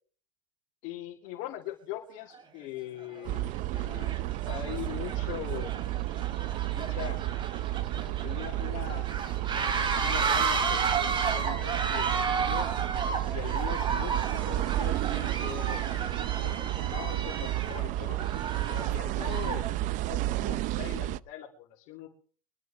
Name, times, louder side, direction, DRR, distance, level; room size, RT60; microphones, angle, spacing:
voice 1, 0.8-4.2 4.4-5.8 6.7-7.2 7.9-9.2 9.6-12.7 13.3-18.2 18.7-19.7 20.1-22.1, left 12 dB, 60° left, -1 dB, 3.0 m, -41 dB
sound 1, 2.3-2.4 3.2-3.4 3.7-19.7, right 5 dB, 30° right, 2.9 m, -33 dB
sound 2, 3.2-21.2, right 16 dB, 50° right, 0.6 m, -32 dB
23.0 x 14.0 x 3.5 m, 0.43 s
supercardioid pair, 115°, 17 cm